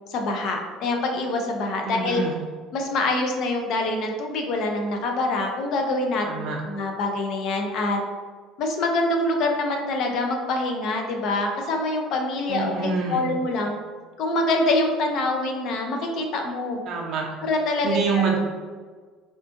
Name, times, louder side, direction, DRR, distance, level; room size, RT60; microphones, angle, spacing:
voice 1, 0.1-2.2 2.7-8.0 8.6-13.7 14.2-16.8 17.4-18.3, left 2 dB, 45° left, 3 dB, 0.4 m, -25 dB
voice 2, 1.8-2.4 6.2-6.6 12.5-13.3 16.9-17.4 17.8-18.4, right 4 dB, 45° right, -1 dB, 0.6 m, -26 dB
3.6 x 2.4 x 2.5 m, 1.5 s
cardioid pair, 165°, 0 cm